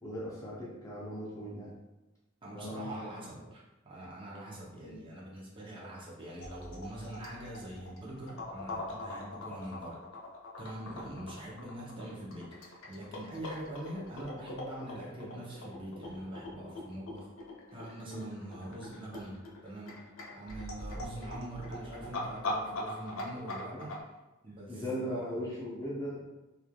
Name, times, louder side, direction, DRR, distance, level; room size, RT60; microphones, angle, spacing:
voice 1, 0.0-1.7 2.5-3.1 4.8-5.0 18.0-18.2 21.1-21.3 23.7-23.8 24.7-26.2, equal, 15° left, -7 dB, 0.5 m, -38 dB
voice 2, 2.4-10.0 10.6-17.3 17.7-20.1 20.3-23.9 24.4-25.4, right 1 dB, 25° right, -4 dB, 0.6 m, -43 dB
sound 1, 6.4-23.9, left 2 dB, 70° left, 0.5 m, -42 dB
3.0 x 2.4 x 2.2 m, 1.0 s
head